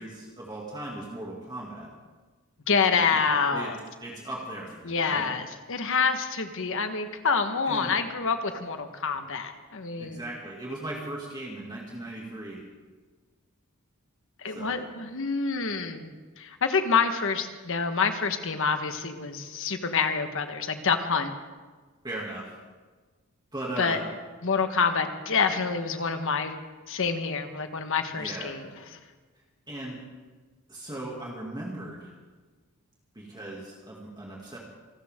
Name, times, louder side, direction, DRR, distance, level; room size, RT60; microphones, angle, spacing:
voice 1, 0.0-1.9 2.9-3.0 3.5-3.7 4.0-5.3 7.7-7.9 10.0-12.6 14.5-14.8 22.0-22.5 23.5-24.0 28.2-28.6 29.7-30.0 30.7-32.1 33.1-34.6, right 1 dB, 20° right, -4 dB, 2.4 m, -37 dB
voice 2, 2.7-3.8 4.8-10.2 14.4-21.3 23.8-24.0 24.4-26.5 26.9-28.7, left 5 dB, 60° left, 7 dB, 1.4 m, -27 dB
27.5 x 13.0 x 3.7 m, 1.4 s
head